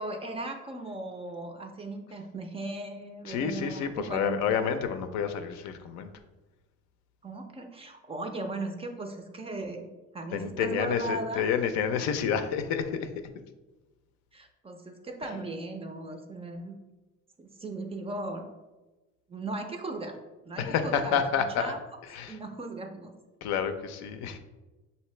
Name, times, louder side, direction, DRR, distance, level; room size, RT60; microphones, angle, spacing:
voice 1, 0.0-4.4 7.2-9.9 10.1-11.4 14.3-16.8 17.4-18.5 19.3-20.2 20.4-21.2 21.6-21.8 22.3-23.1, right 2 dB, 20° right, 5 dB, 0.4 m, -37 dB
voice 2, 3.2-6.1 10.3-13.1 20.6-21.7 22.1-22.4 23.4-24.4, left 7 dB, 65° left, 8 dB, 0.5 m, -29 dB
5.7 x 2.7 x 3.2 m, 1.1 s
cardioid pair, 125°, 30 cm